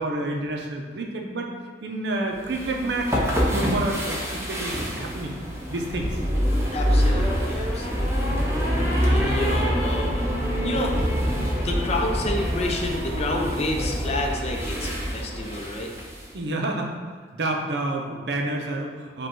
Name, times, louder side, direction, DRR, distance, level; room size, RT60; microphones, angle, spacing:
voice 1, 0.0-1.5 1.8-3.2 3.5-5.4 5.7-6.1 16.3-16.9 17.3-19.3, right 2 dB, 70° right, 1 dB, 0.6 m, -29 dB
sound 1, 2.4-16.3, equal, 15° right, 0.7 m, -25 dB
voice 2, 6.5-8.4 9.0-10.3 10.6-10.9 11.5-15.9, left 1 dB, 35° left, 1 dB, 0.5 m, -29 dB
5.0 x 2.3 x 4.5 m, 1.5 s
head